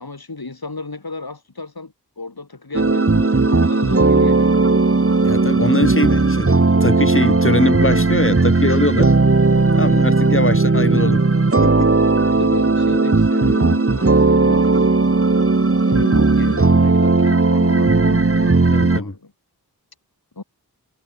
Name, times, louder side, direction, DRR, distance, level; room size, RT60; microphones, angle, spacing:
voice 1, 0.0-4.5 4.9-5.1 9.9-10.2 12.3-15.0 15.8-18.6 18.9-19.3 20.4-20.5, left 3 dB, 70° left, 5.0 m, -33 dB
sound 1, 2.7-19.0, right 3 dB, 35° right, 1.4 m, -16 dB
voice 2, 5.2-6.5 6.8-9.1 9.7-11.2 11.6-11.9 18.7-19.1, left 2 dB, 35° left, 5.6 m, -22 dB
wide cardioid pair, 50°, 38 cm